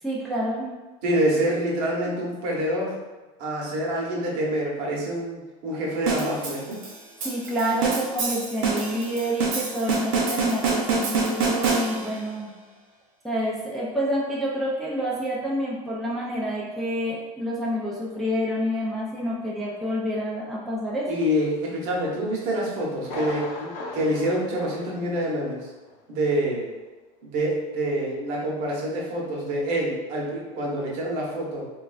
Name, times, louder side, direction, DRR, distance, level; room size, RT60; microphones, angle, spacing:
voice 1, 0.0-0.7 7.2-12.5 13.2-21.1, equal, ahead, -6 dB, 0.4 m, -28 dB
voice 2, 1.0-3.0 3.4-6.8 21.1-25.6 26.1-26.7 27.2-31.7, right 1 dB, 60° right, -3 dB, 0.9 m, -26 dB
sound 1, 6.1-12.3, right 4 dB, 90° right, 0.7 m, -26 dB
Thunder, 23.0-25.6 25.9-26.0 26.5-26.6, left 2 dB, 70° left, 0.7 m, -37 dB
3.1 x 2.3 x 2.3 m, 1.2 s
supercardioid pair, 140°, 17 cm